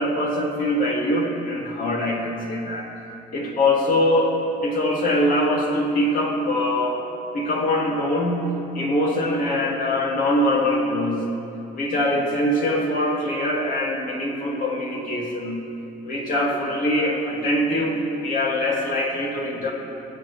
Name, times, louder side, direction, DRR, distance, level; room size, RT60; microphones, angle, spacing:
voice 1, 0.0-2.9 3.3-7.0 7.3-11.3 11.7-15.6 16.0-19.7, left 1 dB, 55° left, -2 dB, 2.5 m, -23 dB
20.5 x 7.4 x 3.4 m, 2.8 s
cardioid pair, 90°, 18 cm